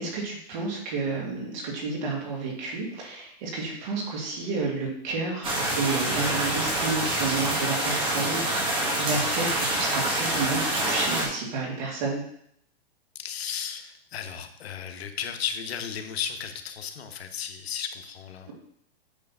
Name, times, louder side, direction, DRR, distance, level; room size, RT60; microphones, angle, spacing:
voice 1, 0.0-12.2, right 3 dB, 45° right, -1 dB, 2.5 m, -31 dB
sound 1, 5.4-11.3, right 1 dB, 15° right, 1.5 m, -26 dB
voice 2, 13.2-18.5, left 8 dB, 80° left, 6 dB, 1.2 m, -34 dB
8.5 x 3.4 x 5.6 m, 0.69 s
hypercardioid pair, 155°, 31 cm